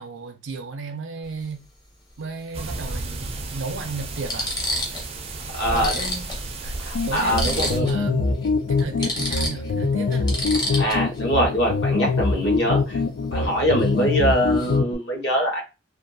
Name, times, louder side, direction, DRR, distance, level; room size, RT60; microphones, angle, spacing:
voice 1, 0.0-1.7 2.2-4.5 5.7-6.3 6.6-8.3 8.7-10.3, right 4 dB, 85° right, 0.5 m, -34 dB
sound 1, 1.2-1.4 2.9-3.0 3.7-3.8 4.2-5.1 5.4-5.5 5.8-8.1 8.3-8.5 8.8-11.2 13.8-14.0 14.3-14.8, left 1 dB, 20° left, 0.7 m, -30 dB
sound 2, 2.5-7.8, right 2 dB, 30° right, 0.4 m, -33 dB
voice 2, 5.5-6.0 6.8-7.9 10.7-13.0 13.3-15.6, equal, 60° left, 0.9 m, -23 dB
sound 3, 6.9-14.9, left 4 dB, 80° left, 0.4 m, -24 dB
2.5 x 2.3 x 2.6 m
head